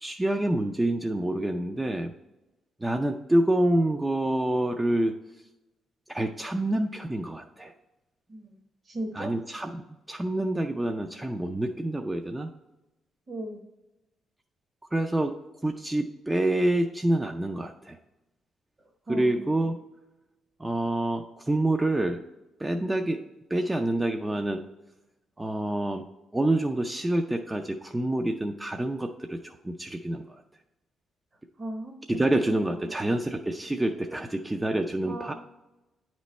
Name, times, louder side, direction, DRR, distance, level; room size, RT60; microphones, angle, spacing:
voice 1, 0.0-2.1 2.8-5.1 6.1-7.7 9.1-12.5 14.9-15.4 15.6-18.0 19.1-19.7 20.6-22.2 22.6-23.2 23.5-24.6 25.4-26.1 26.3-30.4 32.1-35.3, right 1 dB, 15° right, 4 dB, 0.4 m, -27 dB
voice 2, 8.9-9.3 13.3-13.6 19.1-19.5 31.6-32.6 35.1-35.3, right 1 dB, 35° right, 1 dB, 0.9 m, -37 dB
9.1 x 3.1 x 4.1 m, 1.0 s
cardioid pair, 90°, 0 cm